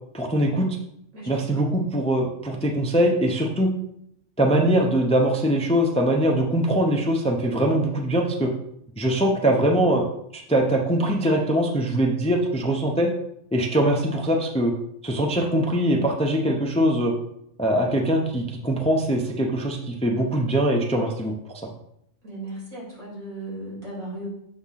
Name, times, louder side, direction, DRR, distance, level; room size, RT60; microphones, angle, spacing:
voice 1, 0.1-0.8 1.3-3.7 4.4-8.5 9.0-10.0 10.3-13.1 13.5-14.7 15.0-17.1 17.6-21.3, right 1 dB, 5° left, 2 dB, 0.5 m, -22 dB
voice 2, 1.1-1.7 22.2-24.3, right 1 dB, 85° right, -5 dB, 3.7 m, -36 dB
7.1 x 3.6 x 5.7 m, 0.76 s
omnidirectional pair, 1.4 m